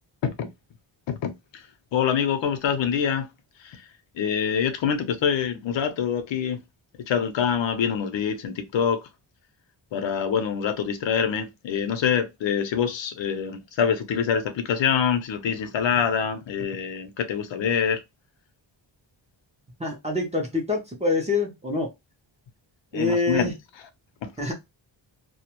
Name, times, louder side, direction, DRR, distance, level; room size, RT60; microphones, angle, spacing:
voice 1, 1.1-1.6 1.9-3.3 3.6-3.8 4.1-6.6 7.1-9.0 9.9-18.0 22.9-23.5, left 7 dB, 70° left, 0.6 m, -25 dB
voice 2, 19.8-21.9 22.9-23.5 24.4-24.5, left 3 dB, 15° right, 0.4 m, -25 dB
2.2 x 2.1 x 2.9 m
wide cardioid pair, 180°, 46 cm